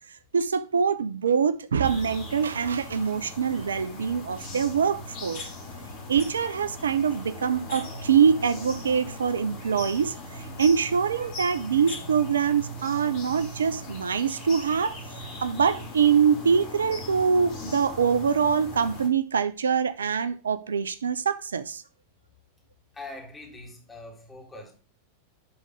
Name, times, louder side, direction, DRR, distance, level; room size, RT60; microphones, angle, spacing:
voice 1, 0.3-5.5 6.1-15.0 15.4-21.8, right 6 dB, 70° right, 0.4 m, -24 dB
sound 1, 1.8-19.1, left 1 dB, 45° left, 2.8 m, -39 dB
voice 2, 22.9-24.8, left 2 dB, 15° left, 2.4 m, -43 dB
10.0 x 3.9 x 4.6 m
figure-of-eight pair, 90°, 0 cm